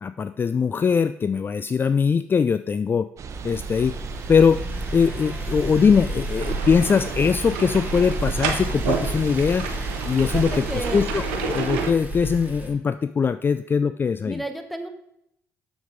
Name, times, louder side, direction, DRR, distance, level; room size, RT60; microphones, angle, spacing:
voice 1, 0.0-3.1 3.4-3.9 4.3-4.6 4.9-9.7 10.1-10.6 10.9-14.4, left 6 dB, 35° left, 12 dB, 0.3 m, -21 dB
sound 1, 3.2-11.1, right 5 dB, 55° right, 0.8 m, -36 dB
sound 2, 3.3-12.7, right 1 dB, 25° right, 2.4 m, -32 dB
sound 3, 6.4-11.9, right 6 dB, 90° right, 0.9 m, -31 dB
voice 2, 10.3-11.1 14.2-14.9, right 1 dB, ahead, 7 dB, 1.3 m, -32 dB
7.2 x 6.5 x 5.0 m, 0.76 s
supercardioid pair, 60°, 6 cm